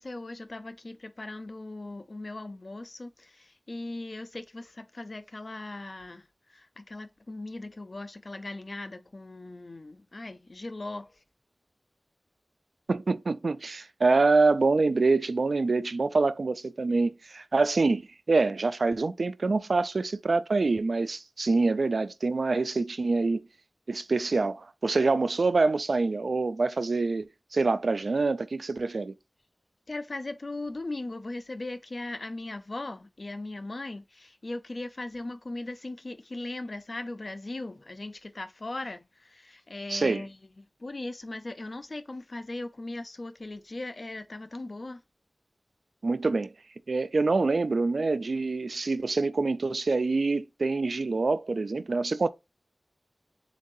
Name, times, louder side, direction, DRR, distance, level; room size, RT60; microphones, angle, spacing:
voice 1, 0.0-11.2 29.9-45.0, left 2 dB, 60° left, 0.5 m, -39 dB
voice 2, 12.9-23.4 23.9-29.1 39.9-40.2 46.0-46.5 46.9-52.3, right 3 dB, 85° right, 0.3 m, -26 dB
7.2 x 2.4 x 2.7 m
wide cardioid pair, 60°, 0 cm